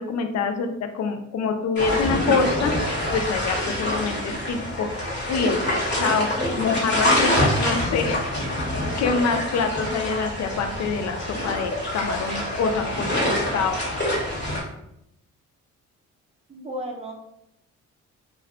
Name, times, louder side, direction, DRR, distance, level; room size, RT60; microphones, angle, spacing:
voice 1, 0.0-5.0 5.3-8.6 9.0-13.8, left 5 dB, 60° left, 6 dB, 0.5 m, -26 dB
sound 1, 1.8-14.6, left 1 dB, 35° left, 1.1 m, -26 dB
voice 2, 16.5-17.1, equal, 20° right, 0 dB, 0.5 m, -33 dB
2.3 x 2.2 x 3.5 m, 0.80 s
cardioid pair, 90°, 30 cm